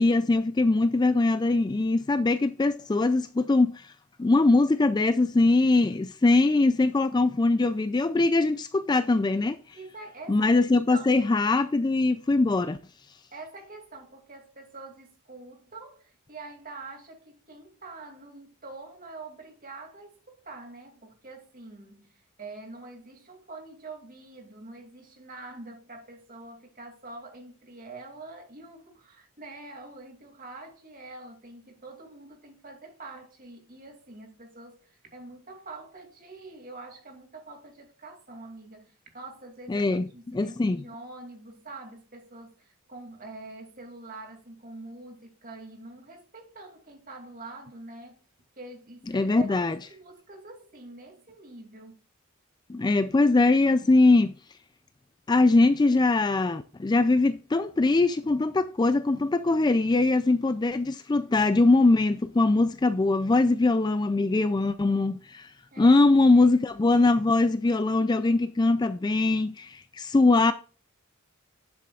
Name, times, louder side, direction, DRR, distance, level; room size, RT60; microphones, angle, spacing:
voice 1, 0.0-3.9 4.2-9.6 10.3-12.8 39.7-40.8 49.1-49.8 52.7-54.3 55.3-65.5 65.8-70.5, left 2 dB, 20° left, 0.3 m, -22 dB
voice 2, 9.7-10.5 10.9-11.3 13.3-48.2 48.6-52.0 65.7-66.0, right 3 dB, 40° right, 2.5 m, -45 dB
10.5 x 7.5 x 2.4 m
head